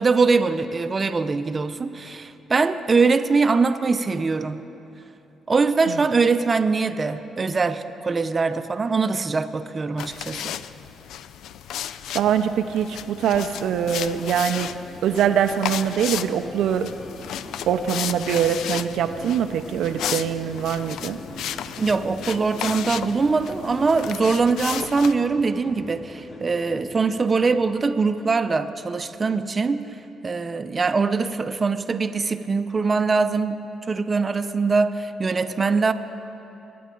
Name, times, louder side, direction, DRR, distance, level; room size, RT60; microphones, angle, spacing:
voice 1, 0.0-4.6 5.5-10.6 21.8-29.8 30.2-33.6 33.9-35.9, right 4 dB, 30° right, 9 dB, 0.6 m, -22 dB
sound 1, 10.0-25.1, left 10 dB, 80° left, 0.3 m, -34 dB
sound 2, 12.1-28.6, left 1 dB, 50° left, 1.8 m, -43 dB
voice 2, 12.1-14.7 15.0-16.9 17.7-21.2, right 8 dB, 80° right, 7 dB, 0.5 m, -23 dB
23.0 x 9.4 x 3.8 m, 3.0 s
cardioid pair, 90°, 0 cm